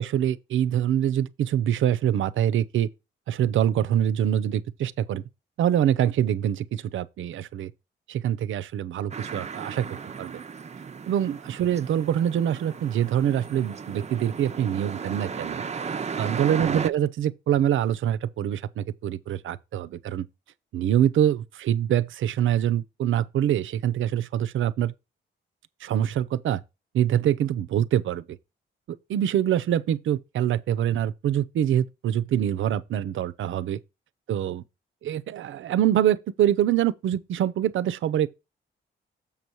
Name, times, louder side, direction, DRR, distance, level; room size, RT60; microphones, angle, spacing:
voice 1, 0.0-2.9 3.3-5.2 5.6-7.7 8.1-9.9 10.2-10.4 11.1-15.6 16.2-20.3 20.7-24.9 25.8-26.6 26.9-28.2 28.9-33.8 34.3-34.6 35.0-38.3, right 10 dB, 80° right, 0.6 m, -25 dB
sound 1, 9.1-16.9, right 6 dB, 35° right, 0.6 m, -35 dB
7.2 x 5.5 x 4.5 m
cardioid pair, 80°, 20 cm